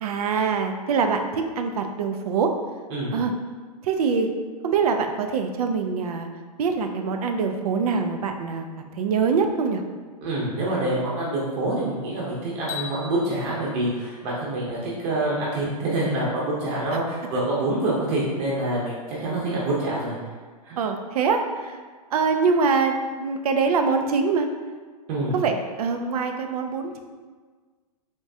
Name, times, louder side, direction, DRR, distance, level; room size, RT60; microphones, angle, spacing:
voice 1, 0.0-2.5 3.1-3.3 3.8-4.3 4.6-6.3 6.6-8.7 8.9-9.8 20.8-21.8 22.1-24.5 25.3-27.0, right 5 dB, 65° right, 6 dB, 0.5 m, -24 dB
voice 2, 10.2-20.2 20.6-20.8 25.1-25.4, right 1 dB, 40° right, -6 dB, 0.8 m, -26 dB
sound 1, 12.7-14.9, left 7 dB, 15° left, 0.5 m, -40 dB
3.5 x 3.0 x 2.7 m, 1.5 s
hypercardioid pair, 130°, 20 cm